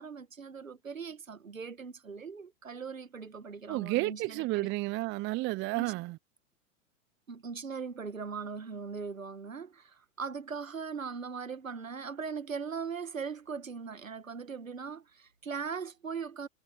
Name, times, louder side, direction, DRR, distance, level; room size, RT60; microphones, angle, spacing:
voice 1, 0.0-4.7 5.7-5.9 7.3-16.5, right 5 dB, 90° right, 1.9 m, -40 dB
voice 2, 3.7-6.2, right 21 dB, 30° right, 0.6 m, -31 dB
figure-of-eight pair, 95°, 39 cm